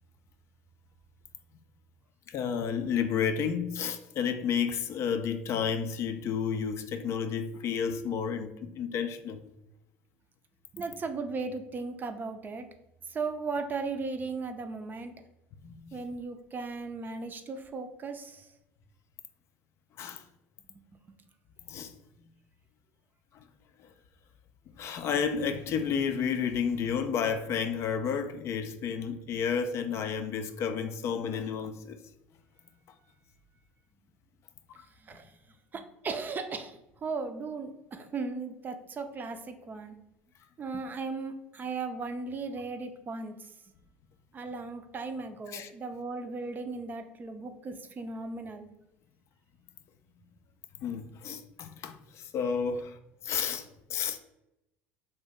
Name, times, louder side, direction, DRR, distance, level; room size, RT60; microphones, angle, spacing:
voice 1, 2.3-9.4 15.6-15.8 20.0-20.2 21.6-21.9 24.8-32.0 34.8-34.9 35.1-35.2 45.5-45.7 50.8-53.0 53.2-54.2, left 7 dB, 50° left, 0.3 m, -31 dB
voice 2, 10.7-12.7 13.1-15.1 15.9-18.5 35.0-35.3 35.7-40.0 40.6-43.5 44.3-48.7, right 4 dB, 30° right, 0.4 m, -37 dB
2.6 x 2.1 x 3.7 m
hypercardioid pair, 75°, 6 cm